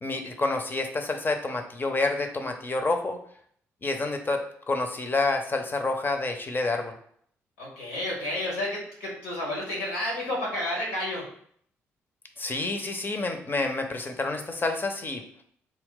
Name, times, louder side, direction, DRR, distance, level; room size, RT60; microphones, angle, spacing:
voice 1, 0.0-3.2 3.8-4.4 4.7-6.9 12.4-15.2, left 3 dB, 30° left, 5 dB, 0.7 m, -28 dB
voice 2, 7.6-11.2, left 1 dB, 85° left, -3 dB, 1.2 m, -31 dB
3.7 x 2.3 x 3.8 m, 0.63 s
hypercardioid pair, 40°, 7 cm